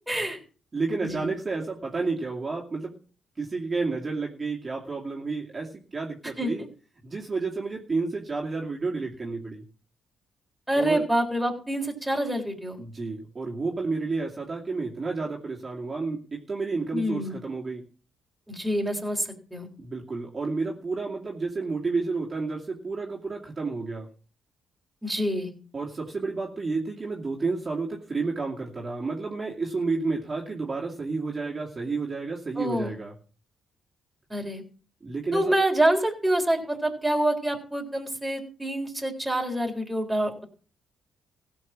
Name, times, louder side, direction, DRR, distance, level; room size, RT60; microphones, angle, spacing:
voice 1, 0.1-0.4 1.0-1.3 6.4-6.7 10.7-12.8 16.9-17.3 18.5-19.7 25.0-25.5 32.6-32.9 34.3-34.6 35.3-40.4, right 1 dB, 5° right, 1 dB, 3.9 m, -26 dB
voice 2, 0.7-3.0 3.4-6.6 7.0-9.6 10.7-11.0 12.8-17.8 19.8-24.1 25.7-33.1 35.0-35.4, right 3 dB, 30° right, -2 dB, 2.6 m, -31 dB
16.0 x 5.4 x 7.4 m, 0.39 s
cardioid pair, 90°, 0 cm